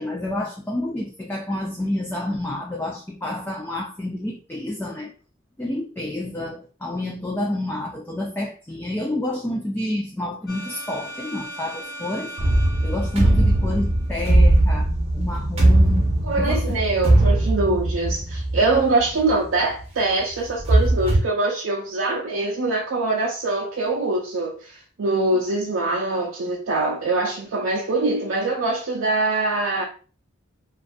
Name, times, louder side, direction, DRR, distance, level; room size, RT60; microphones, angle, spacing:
voice 1, 0.0-5.1 5.6-12.3 12.8-16.8, left 1 dB, 10° left, 0.3 m, -29 dB
sound 1, 10.5-14.4, right 1 dB, 55° left, 0.8 m, -38 dB
sound 2, 12.4-19.3 19.8-19.9 20.5-21.2, right 1 dB, 30° right, 0.7 m, -19 dB
voice 2, 16.2-29.8, right 2 dB, 70° right, 0.5 m, -23 dB
2.4 x 2.3 x 2.5 m
head